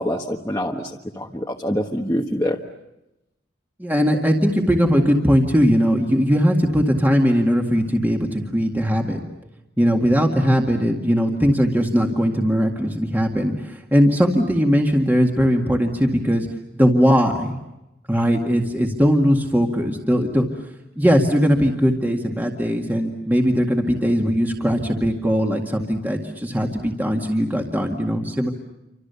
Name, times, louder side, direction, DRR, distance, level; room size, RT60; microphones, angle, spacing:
voice 1, 0.0-2.6, equal, 15° left, -2 dB, 1.4 m, -25 dB
voice 2, 3.8-9.2 9.8-16.5 16.7-17.6 18.1-20.4 21.0-28.5, equal, 10° right, 1 dB, 1.9 m, -19 dB
29.0 x 25.5 x 7.0 m, 0.94 s
head